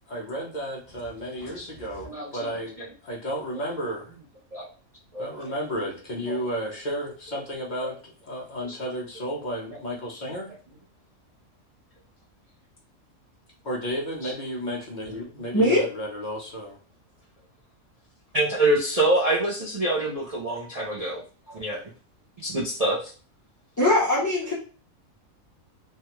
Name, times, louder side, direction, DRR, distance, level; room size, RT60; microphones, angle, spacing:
voice 1, 0.1-2.8 3.0-4.1 5.2-7.9 8.3-10.5 13.6-16.8, equal, 40° left, -3 dB, 0.8 m, -32 dB
voice 2, 1.4-1.7 2.0-2.9 4.5-4.7 5.1-5.3 6.3-6.4 7.8-7.9 8.6-8.8 9.7-9.8 14.2-14.3 18.3-21.2 21.5-21.8 22.4-23.1, right 1 dB, 40° right, -5 dB, 0.5 m, -26 dB
voice 3, 15.5-15.8 23.8-24.5, left 1 dB, 25° left, -5 dB, 0.4 m, -20 dB
3.3 x 2.2 x 2.9 m, 0.38 s
omnidirectional pair, 1.4 m